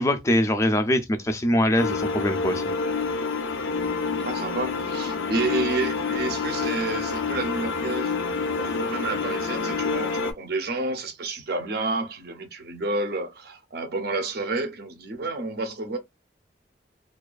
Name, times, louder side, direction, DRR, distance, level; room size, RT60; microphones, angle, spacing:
voice 1, 0.0-2.6, left 1 dB, 15° left, 0.3 m, -23 dB
sound 1, 1.8-10.3, left 4 dB, 80° left, 0.4 m, -28 dB
voice 2, 4.2-16.0, right 3 dB, 55° right, 0.5 m, -30 dB
2.4 x 2.3 x 2.3 m
head